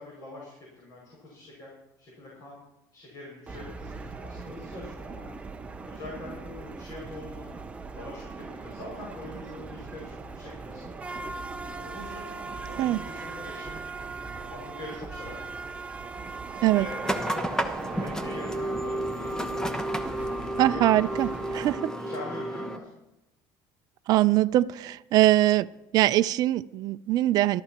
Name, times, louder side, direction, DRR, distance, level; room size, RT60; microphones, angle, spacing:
voice 1, 0.0-1.7 2.0-2.6 2.9-5.3 5.8-7.5 7.9-10.9 11.7-13.8 14.3-15.4 16.7-19.9 20.5-21.2 22.0-22.9, left 2 dB, 45° left, -4 dB, 6.0 m, -43 dB
sound 1, 3.5-21.8, right 4 dB, 15° right, 0.7 m, -39 dB
sound 2, 17.0-22.8, right 1 dB, 5° left, 1.0 m, -31 dB
voice 2, 20.6-21.9 24.1-25.7 25.9-27.6, right 15 dB, 50° right, 12 dB, 0.5 m, -22 dB
23.5 x 13.0 x 3.0 m, 0.91 s
cardioid pair, 150°, 9 cm